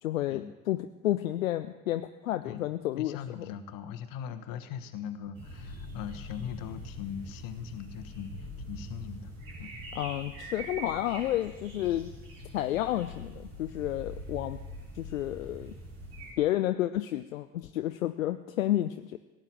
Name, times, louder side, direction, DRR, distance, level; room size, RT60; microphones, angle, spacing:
voice 1, 0.0-0.8 1.0-3.5 9.9-12.1 12.5-14.6 15.0-15.7 16.4-19.2, left 13 dB, 80° left, 10 dB, 0.5 m, -31 dB
voice 2, 3.0-9.3 9.6-9.8, left 8 dB, 55° left, 9 dB, 1.3 m, -40 dB
sound 1, 5.3-16.3, equal, 65° right, 4.1 m, -43 dB
16.0 x 9.1 x 7.6 m, 1.1 s
figure-of-eight pair, 50°, 40 cm